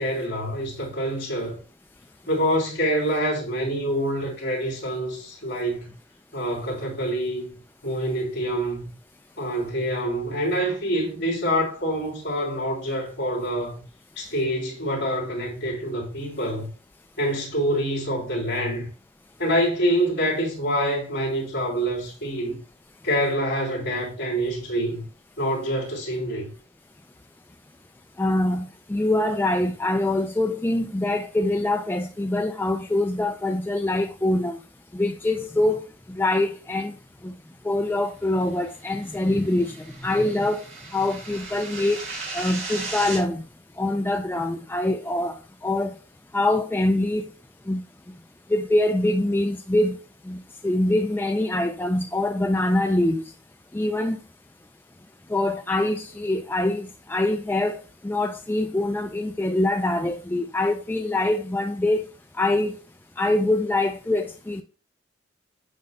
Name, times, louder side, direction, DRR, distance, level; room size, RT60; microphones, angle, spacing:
voice 1, 0.0-1.6 2.3-5.9 6.3-7.5 7.8-8.9 9.4-13.8 14.2-16.7 17.2-18.9 19.4-22.6 23.0-25.1 25.4-26.5, equal, 55° left, 3.2 m, -26 dB
voice 2, 28.2-34.6 34.9-36.9 37.2-37.3 37.6-40.6 40.9-42.1 42.3-43.4 43.8-45.4 45.6-45.9 46.3-47.2 47.7-47.8 48.5-50.0 50.3-53.2 53.7-54.2 55.3-62.0 62.4-62.8 63.2-64.6, left 1 dB, 10° left, 0.3 m, -24 dB
sound 1, 38.7-43.2, right 3 dB, 60° right, 3.7 m, -36 dB
9.4 x 5.3 x 2.2 m
head